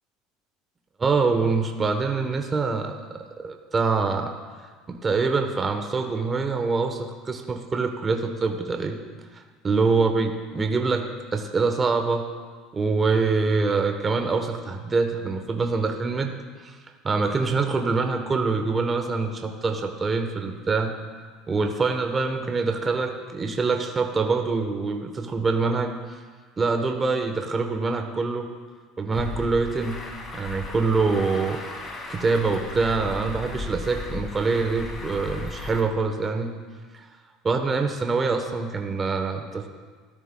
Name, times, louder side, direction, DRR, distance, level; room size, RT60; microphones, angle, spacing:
voice 1, 1.0-4.3 4.9-9.0 9.3-12.3 12.7-16.3 16.6-16.8 17.0-20.9 21.5-25.9 26.6-28.5 29.0-30.0 30.3-36.5 36.9-37.1 37.4-39.7, right 4 dB, 25° right, 5 dB, 1.0 m, -25 dB
Truck, 29.1-35.8, left 3 dB, 35° left, 2.1 m, -36 dB
13.5 x 13.0 x 2.2 m, 1.5 s
supercardioid pair, 95°, 0 cm